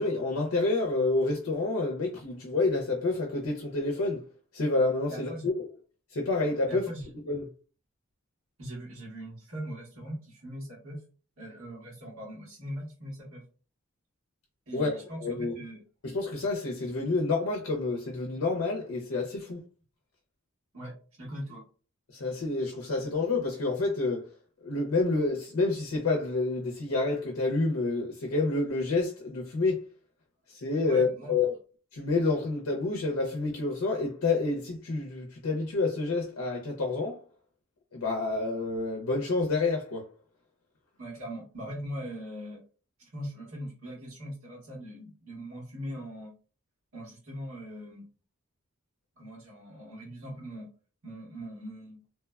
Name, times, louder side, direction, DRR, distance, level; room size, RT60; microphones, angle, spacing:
voice 1, 0.0-4.2 4.5-5.5 6.1-6.8 7.3-7.4 14.7-14.9 15.2-15.5 16.0-19.6 22.1-24.3 24.6-29.8 30.5-31.5 31.9-37.2 37.9-40.1, left 3 dB, 75° left, 0.5 m, -28 dB
voice 2, 5.1-5.5 6.7-7.1 8.6-11.0 11.4-13.4 14.7-15.8 20.7-21.6 30.8-31.3 41.0-42.6 43.0-46.3 46.9-48.1 49.2-50.7 51.0-52.0, equal, 80° right, 1.4 m, -40 dB
3.0 x 2.1 x 2.2 m
head